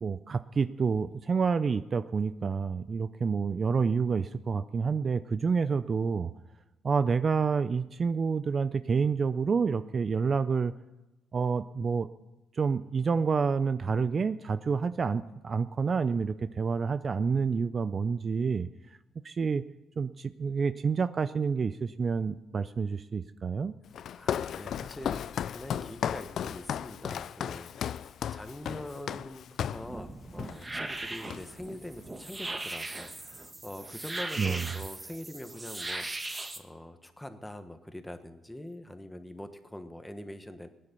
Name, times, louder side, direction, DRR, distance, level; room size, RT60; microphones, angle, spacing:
voice 1, 0.0-6.3 6.8-10.7 11.3-12.1 12.5-18.7 19.2-19.6 20.0-23.7 34.4-34.7, right 5 dB, 40° right, 13 dB, 0.5 m, -28 dB
Walk footsteps, 23.9-29.9 30.4-30.6 30.9-31.7, left 9 dB, 65° left, 0.4 m, -35 dB
voice 2, 24.1-40.7, left 1 dB, 5° left, 8 dB, 1.4 m, -44 dB
sound 1, 29.7-36.6, right 2 dB, 20° right, 1.6 m, -39 dB
17.5 x 10.0 x 6.9 m, 1.0 s
cardioid pair, 90°, 0 cm